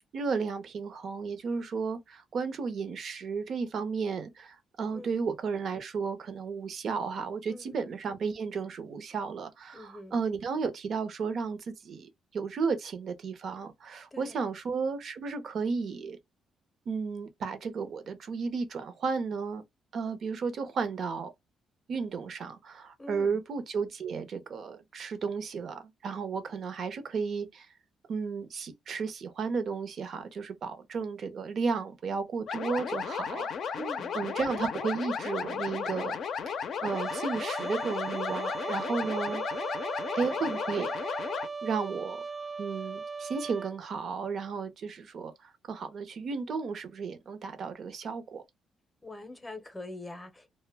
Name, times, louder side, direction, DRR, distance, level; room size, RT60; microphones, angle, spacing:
voice 1, 0.1-16.2 16.9-19.6 19.9-21.3 21.9-27.7 28.1-33.8 34.1-36.2 36.5-39.4 40.1-41.2 41.6-42.2 42.6-48.4, right 5 dB, 60° right, 0.6 m, -33 dB
voice 2, 9.7-10.2 14.1-14.4 23.0-23.3 33.8-34.1 49.0-50.5, left 1 dB, 15° left, 0.6 m, -43 dB
sound 1, 32.5-41.5, left 6 dB, 60° left, 0.5 m, -34 dB
Trumpet, 36.9-43.7, right 4 dB, 20° right, 0.3 m, -38 dB
2.1 x 2.1 x 3.3 m
cardioid pair, 90°, 0 cm